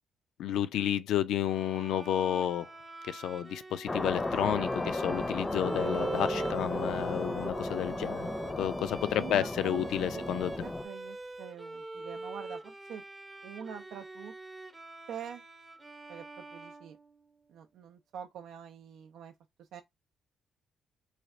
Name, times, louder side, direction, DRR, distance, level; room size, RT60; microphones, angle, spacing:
voice 1, 0.4-2.7 3.1-8.3 8.6-10.5, left 10 dB, 80° left, 0.4 m, -31 dB
Bowed string instrument, 1.4-17.5, right 2 dB, 20° right, 0.6 m, -44 dB
sound 1, 3.9-10.9, left 2 dB, 25° left, 0.6 m, -35 dB
Guitar, 5.6-9.5, right 6 dB, 45° right, 0.9 m, -41 dB
voice 2, 9.1-9.9 10.1-10.2 10.6-13.0 13.4-14.3 15.1-15.4 16.1-17.0 17.5-19.3 19.6-19.8, right 8 dB, 80° right, 0.4 m, -45 dB
3.3 x 2.4 x 4.0 m
cardioid pair, 90°, 0 cm